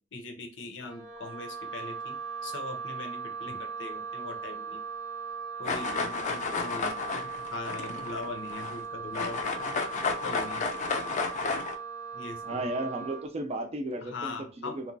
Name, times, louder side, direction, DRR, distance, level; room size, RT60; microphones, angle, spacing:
voice 1, 0.1-4.8 5.6-9.8 10.2-10.6 12.1-12.7 14.0-14.8, left 3 dB, 75° left, 0.6 m, -41 dB
Wind instrument woodwind instrument, 0.8-13.3, right 5 dB, 80° right, 0.5 m, -39 dB
sound 1, 5.6-8.8 9.1-11.8, left 4 dB, 40° left, 0.3 m, -32 dB
voice 2, 12.4-14.9, right 1 dB, 35° right, 0.4 m, -35 dB
2.9 x 2.1 x 2.6 m
head